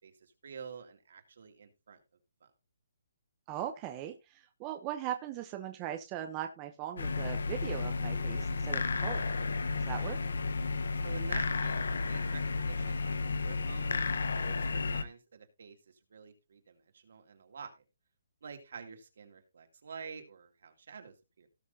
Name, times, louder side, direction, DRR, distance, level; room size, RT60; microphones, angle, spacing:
voice 1, 0.0-2.0 2.4-2.5 11.0-14.1 14.4-17.8 18.4-21.5, right 6 dB, 60° right, 5 dB, 2.5 m, -49 dB
voice 2, 3.5-9.3 9.7-10.2, right 11 dB, 15° right, 6 dB, 0.7 m, -39 dB
sound 1, 7.0-15.0, left 4 dB, 80° left, 1.0 m, -32 dB
18.0 x 6.2 x 2.7 m, 0.25 s
hypercardioid pair, 175°, 0 cm